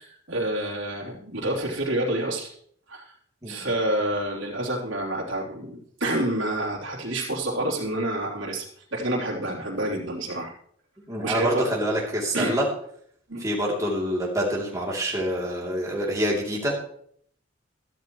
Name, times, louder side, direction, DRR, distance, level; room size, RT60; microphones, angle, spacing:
voice 1, 0.0-2.5 2.9-3.1 3.5-10.5 11.2-11.7 12.3-12.6 13.3-13.5, right 1 dB, 70° right, -3 dB, 3.1 m, -28 dB
voice 2, 3.4-3.7 11.1-12.7 13.4-16.8, equal, 15° right, -3 dB, 2.8 m, -26 dB
13.5 x 12.5 x 3.1 m, 0.62 s
head